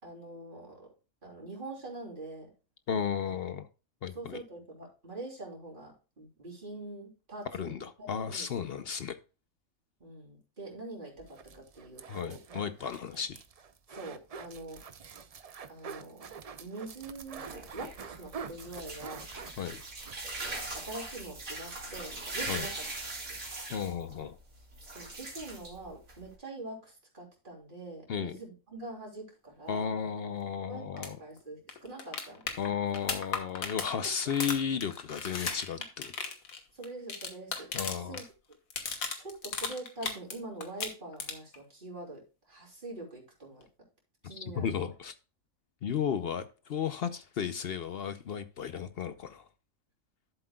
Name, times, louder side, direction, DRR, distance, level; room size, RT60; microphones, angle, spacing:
voice 1, 0.0-0.9 1.2-2.5 3.3-3.4 4.1-8.5 10.0-12.4 13.1-13.2 13.9-14.8 15.7-17.5 17.7-19.3 20.5-22.8 24.9-29.9 30.7-32.6 34.0-34.1 36.7-38.2 39.2-43.7 44.2-44.9 46.1-46.3, right 2 dB, 35° right, 3.6 m, -44 dB
voice 2, 2.9-3.7 4.0-4.4 7.5-9.2 12.1-13.4 19.6-19.8 22.5-22.7 23.7-24.4 28.1-28.4 29.7-31.2 32.6-36.1 37.7-38.2 44.2-45.1 45.8-49.4, left 7 dB, 60° left, 0.7 m, -34 dB
sound 1, 11.2-20.5 20.8-20.9 21.2-21.3, right 6 dB, 60° right, 0.4 m, -46 dB
sound 2, 17.2-26.3, right 2 dB, 75° right, 2.8 m, -41 dB
sound 3, 31.0-31.1 31.4-31.5 31.7-38.2 38.5-40.3 40.6-41.6 43.6-43.7, left 5 dB, 80° left, 1.7 m, -36 dB
12.5 x 7.5 x 2.3 m
omnidirectional pair, 1.4 m